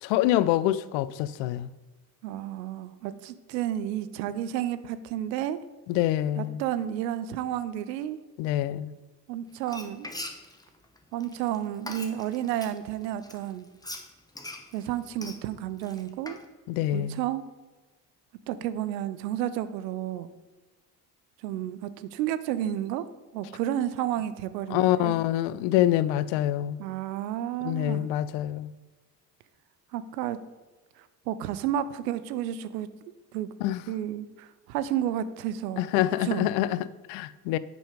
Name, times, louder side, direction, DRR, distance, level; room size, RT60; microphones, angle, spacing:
voice 1, 0.0-1.7 5.9-6.6 8.4-8.9 16.7-17.2 24.7-26.8 27.6-28.7 33.6-33.8 35.8-37.6, left 13 dB, 65° left, 0.5 m, -26 dB
voice 2, 2.2-5.6 6.4-8.2 9.3-10.1 11.1-13.7 14.7-16.4 16.9-17.4 18.5-20.3 21.4-23.0 23.3-25.1 26.8-28.1 29.9-30.4 31.0-33.5 33.9-35.9 36.2-36.5, right 11 dB, 80° right, 0.6 m, -31 dB
Frying (food), 9.6-12.8 13.2-16.4, left 2 dB, 10° left, 1.0 m, -41 dB
7.5 x 5.3 x 5.0 m
hypercardioid pair, 55°, 49 cm